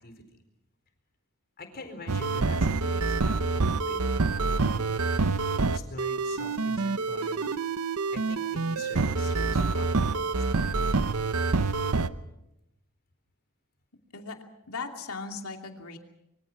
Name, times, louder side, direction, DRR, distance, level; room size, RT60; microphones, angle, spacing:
voice 1, 1.6-4.0 4.4-4.8 5.7-7.5 8.1-10.8, left 2 dB, 45° left, 6 dB, 4.3 m, -44 dB
sound 1, 2.1-12.1, right 3 dB, 70° right, 0.9 m, -27 dB
voice 2, 14.7-16.0, left 4 dB, 70° left, 4 dB, 2.7 m, -38 dB
25.5 x 24.0 x 6.0 m, 0.86 s
head